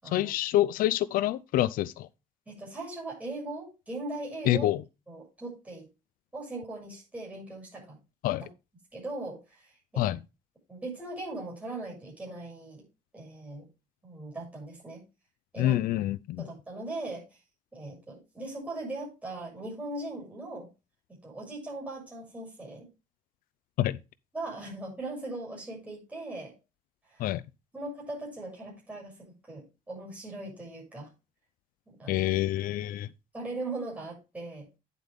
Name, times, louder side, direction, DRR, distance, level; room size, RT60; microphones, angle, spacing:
voice 1, 0.1-2.1 4.5-4.8 8.2-8.4 10.0-10.2 15.6-16.4 23.8-24.0 27.2-27.4 32.1-33.1, left 14 dB, 80° left, 0.5 m, -27 dB
voice 2, 2.5-4.7 5.1-5.9 6.3-8.0 8.4-8.5 8.9-10.1 10.7-12.8 13.1-13.7 14.0-15.0 15.5-15.8 16.4-17.3 17.7-20.7 21.1-22.9 24.3-26.5 27.1-27.3 27.7-31.1 31.9-32.3 33.3-34.7, right 2 dB, 10° right, 6.7 m, -39 dB
9.7 x 7.8 x 3.5 m
cardioid pair, 175°, 15 cm